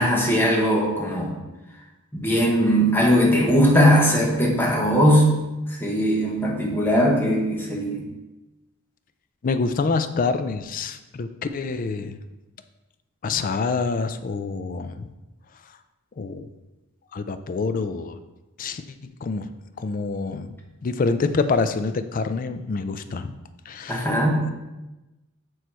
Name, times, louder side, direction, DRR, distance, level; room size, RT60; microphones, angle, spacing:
voice 1, 0.0-1.3 2.1-5.3 5.7-8.0 23.9-24.5, equal, 10° left, -2 dB, 1.1 m, -19 dB
voice 2, 9.4-12.2 13.2-15.1 16.2-16.5 17.1-18.2 18.6-19.5 19.8-20.5 20.8-23.3 23.7-24.1, left 4 dB, 40° left, 10 dB, 0.4 m, -26 dB
8.0 x 3.1 x 4.4 m, 1.0 s
head